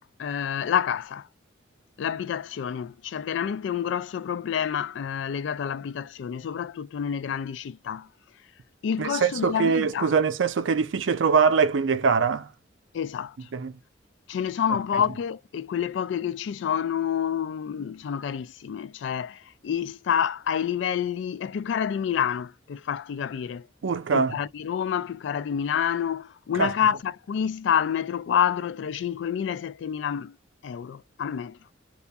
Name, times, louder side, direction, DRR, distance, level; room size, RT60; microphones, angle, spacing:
voice 1, 0.2-1.3 2.0-8.1 8.8-10.1 12.9-13.5 14.3-23.7 24.1-30.4 30.6-31.6, left 8 dB, 70° left, 0.3 m, -28 dB
voice 2, 9.0-12.5 13.5-13.7 23.8-24.4 26.5-26.7, right 5 dB, 75° right, 0.5 m, -23 dB
2.4 x 2.2 x 2.6 m
head